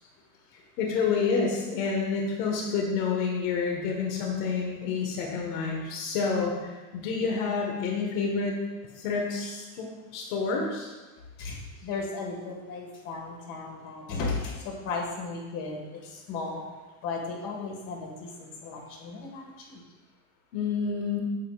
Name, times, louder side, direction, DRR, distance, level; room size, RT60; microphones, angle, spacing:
voice 1, 0.8-8.5 9.0-10.9 20.5-21.2, left 5 dB, 80° left, 0 dB, 1.5 m, -29 dB
voice 2, 11.4-16.6 17.0-19.8, left 3 dB, 50° left, 0 dB, 1.7 m, -35 dB
8.4 x 7.1 x 2.4 m, 1.2 s
cardioid pair, 160°, 41 cm